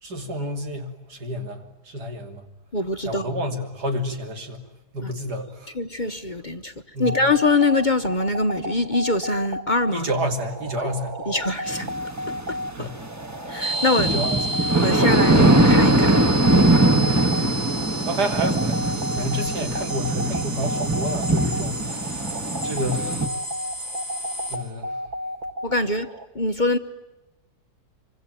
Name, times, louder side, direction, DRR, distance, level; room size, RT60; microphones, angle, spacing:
voice 1, 0.0-2.4 3.0-4.6 4.9-5.7 6.9-7.2 9.9-11.2 12.8-13.0 14.0-14.4 15.0-15.1 17.3-17.7 18.1-22.3 22.6-23.4 24.5-24.9, equal, 90° right, 3.5 m, -29 dB
voice 2, 2.7-3.3 5.0-5.1 5.7-6.7 7.0-10.1 10.8-10.9 11.3-11.9 12.3-12.9 13.5-14.1 14.8-16.2 25.6-26.1 26.3-26.8, left 2 dB, 35° left, 1.0 m, -24 dB
sound 1, 7.0-26.3, equal, 30° right, 1.6 m, -32 dB
sound 2, 11.7-13.4 13.7-23.3, right 1 dB, 10° right, 1.4 m, -21 dB
sound 3, 13.6-24.6, right 2 dB, 55° right, 7.3 m, -32 dB
26.0 x 25.0 x 9.1 m
omnidirectional pair, 1.7 m